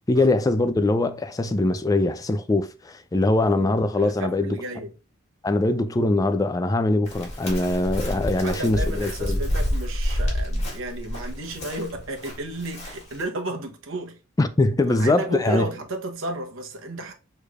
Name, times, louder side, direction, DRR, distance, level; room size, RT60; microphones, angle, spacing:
voice 1, 0.1-4.6 5.4-9.4 14.4-15.7, left 2 dB, 15° left, 0.3 m, -22 dB
voice 2, 3.3-4.9 8.4-14.2 14.9-17.1, right 1 dB, 70° right, 1.0 m, -33 dB
Chirp tweet, 7.0-13.2, equal, 35° left, 2.2 m, -28 dB
6.5 x 3.3 x 2.4 m
head